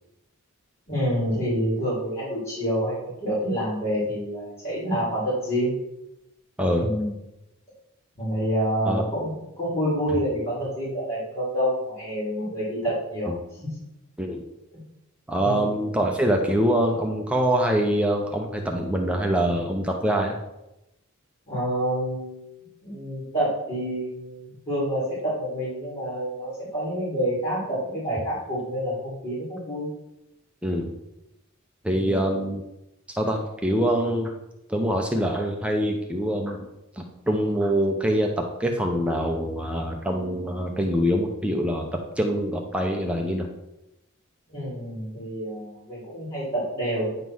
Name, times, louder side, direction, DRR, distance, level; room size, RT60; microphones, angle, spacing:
voice 1, 0.9-5.7 6.8-7.1 8.2-13.6 14.7-14.8 15.4-15.6 21.5-22.4 22.8-29.9 31.9-32.2 44.5-47.2, equal, 30° left, -8 dB, 3.4 m, -28 dB
voice 2, 15.3-20.4 30.6-30.9 31.8-32.6 33.1-34.3 34.7-36.7 37.0-43.5, equal, 5° right, 1 dB, 0.7 m, -24 dB
9.4 x 3.7 x 6.1 m, 0.92 s
head